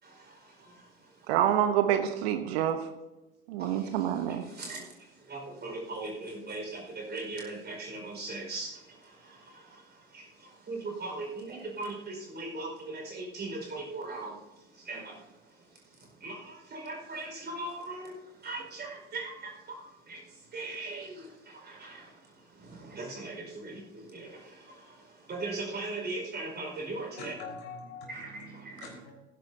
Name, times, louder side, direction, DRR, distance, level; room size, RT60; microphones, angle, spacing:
voice 1, 0.0-1.3 3.6-27.3 28.1-29.0, right 2 dB, 30° right, 1 dB, 4.9 m, -40 dB
voice 2, 1.3-2.9 3.5-4.4, right 10 dB, 60° right, 8 dB, 1.0 m, -27 dB
voice 3, 27.2-29.2, left 4 dB, 60° left, 1 dB, 3.9 m, -44 dB
18.0 x 10.5 x 2.8 m, 1.0 s
figure-of-eight pair, 70°, 36 cm